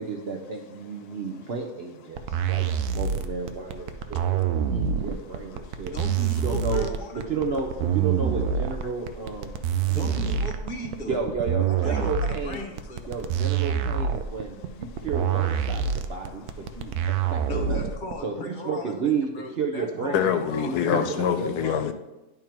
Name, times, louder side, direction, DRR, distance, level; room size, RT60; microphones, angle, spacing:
voice 1, 0.0-4.4 4.7-5.9 6.4-6.8 7.3-9.5 9.9-10.4 11.1-12.6 13.1-16.5 16.7-16.9 17.3-17.8 18.2-19.3 19.6-20.3 20.6-21.0 21.4-21.8, right 4 dB, 55° right, 0.8 m, -32 dB
sound 1, 2.2-18.1, right 8 dB, 80° right, 1.1 m, -26 dB
voice 2, 2.3-2.8 4.3-4.8 5.6-5.9 9.5-10.0 14.6-15.4 16.3-17.3 20.1-21.9, left 8 dB, 90° left, 1.2 m, -29 dB
voice 3, 5.9-7.3 9.9-11.1 11.7-13.0 17.5-21.3, left 1 dB, 35° left, 1.0 m, -36 dB
10.5 x 3.6 x 4.4 m
omnidirectional pair, 1.6 m